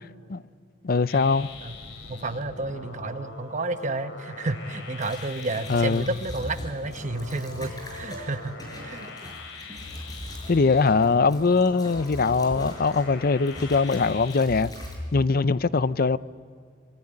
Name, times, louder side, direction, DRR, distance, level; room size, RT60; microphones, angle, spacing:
voice 1, 0.8-1.5 5.7-6.0 10.5-14.7 15.1-16.2, left 4 dB, 50° left, 0.6 m, -22 dB
sound 1, 1.1-14.4, left 3 dB, 80° left, 3.2 m, -42 dB
voice 2, 2.1-8.6 8.8-9.1, right 2 dB, 40° right, 1.1 m, -31 dB
sound 2, 5.0-13.2 13.5-15.0, equal, 20° left, 6.2 m, -41 dB
24.5 x 24.0 x 10.0 m
head